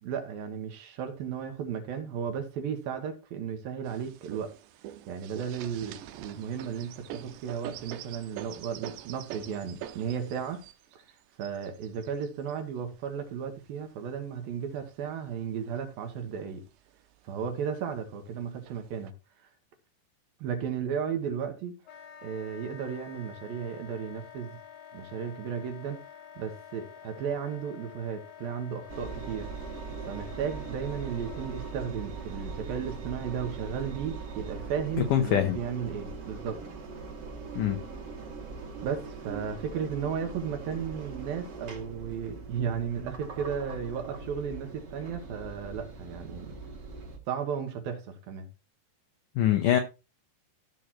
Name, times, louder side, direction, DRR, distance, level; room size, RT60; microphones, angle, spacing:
voice 1, 0.0-4.5 5.1-10.6 10.9-11.0 11.4-16.6 17.2-19.1 20.4-21.7 22.2-24.6 24.9-26.0 26.4-29.5 30.1-36.6 38.8-46.6 47.3-48.5, right 7 dB, 65° right, 2.8 m, -34 dB
sound 1, 3.8-14.1 14.8-15.7 16.1-16.2 16.5-17.2 18.0-18.1 18.7-19.1, right 12 dB, 90° right, 3.0 m, -45 dB
Wind instrument woodwind instrument, 21.8-32.0, left 9 dB, 65° left, 2.6 m, -49 dB
Engine, 28.9-47.2, right 4 dB, 45° right, 2.7 m, -41 dB
voice 2, 35.1-35.6 37.6-37.8 49.4-49.8, left 11 dB, 85° left, 1.8 m, -23 dB
14.5 x 6.7 x 3.0 m
omnidirectional pair, 5.0 m